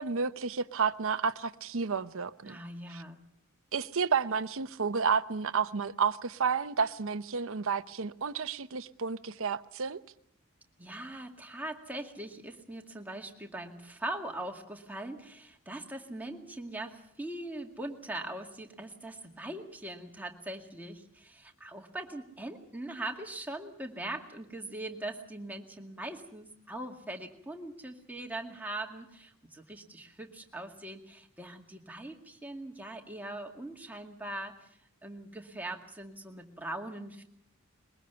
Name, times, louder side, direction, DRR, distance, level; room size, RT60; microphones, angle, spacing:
voice 1, 0.0-2.6 2.9-3.0 3.7-10.0, right 5 dB, 65° right, 0.8 m, -31 dB
voice 2, 2.5-3.2 10.8-34.7 35.0-37.2, right 1 dB, 10° right, 2.1 m, -41 dB
22.0 x 21.5 x 6.9 m
head